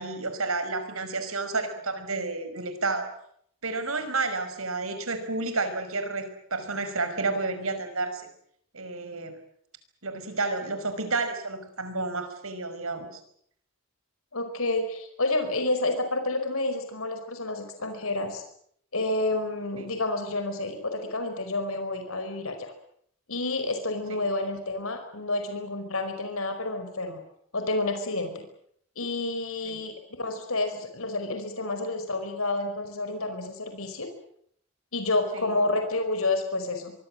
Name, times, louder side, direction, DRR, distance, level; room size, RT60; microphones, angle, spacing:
voice 1, 0.0-3.1 3.6-8.3 8.7-9.3 10.0-13.2 19.8-19.9 24.1-24.2 29.6-29.8 35.3-35.6, right 3 dB, 85° right, 9 dB, 5.6 m, -31 dB
voice 2, 14.3-18.4 18.9-22.7 23.3-27.2 27.5-28.4 29.0-34.1 34.9-36.9, left 2 dB, 85° left, 7 dB, 5.0 m, -29 dB
24.5 x 24.0 x 7.7 m, 0.67 s
head